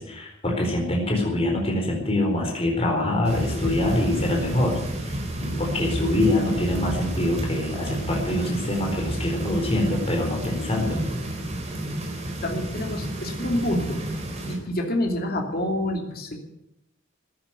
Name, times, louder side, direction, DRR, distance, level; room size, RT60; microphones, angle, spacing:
voice 1, 0.0-11.0, left 1 dB, 30° left, 0 dB, 4.4 m, -25 dB
sound 1, 3.2-14.6, right 1 dB, 35° right, 4.2 m, -31 dB
voice 2, 12.4-14.1 14.5-16.4, left 1 dB, 45° left, 2 dB, 2.8 m, -27 dB
15.0 x 10.5 x 9.2 m, 0.83 s
head